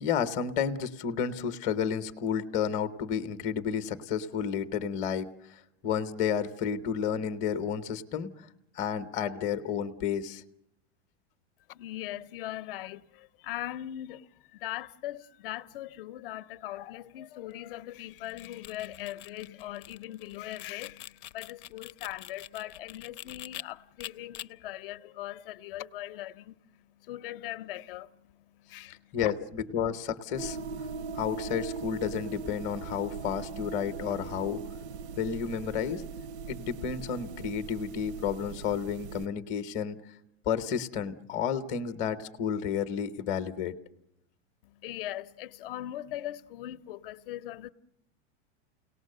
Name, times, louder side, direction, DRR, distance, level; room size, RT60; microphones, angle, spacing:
voice 1, 0.0-8.5 8.7-10.4 29.1-30.6 31.1-34.6 35.2-36.0 36.5-40.0 40.5-43.7, left 7 dB, 20° left, 0.8 m, -31 dB
voice 2, 11.7-29.3 44.6-47.7, left 14 dB, 55° left, 0.7 m, -40 dB
sound 1, 18.1-23.6 24.0-24.5, left 14 dB, 85° left, 0.8 m, -45 dB
sound 2, 30.4-39.3, right 5 dB, 75° right, 0.8 m, -40 dB
29.5 x 18.5 x 6.6 m
supercardioid pair, 175°, 34 cm